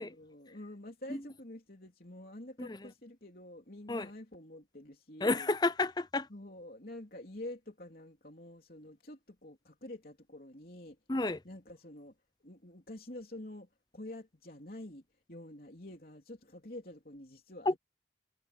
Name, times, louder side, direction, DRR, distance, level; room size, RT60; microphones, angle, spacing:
voice 1, 0.0-5.5 6.3-11.0 11.4-12.1 12.4-15.0 15.3-17.8, left 1 dB, 50° left, 3.5 m, -48 dB
voice 2, 5.2-6.3 11.1-11.4 17.7-17.8, left 2 dB, 20° left, 0.6 m, -30 dB
head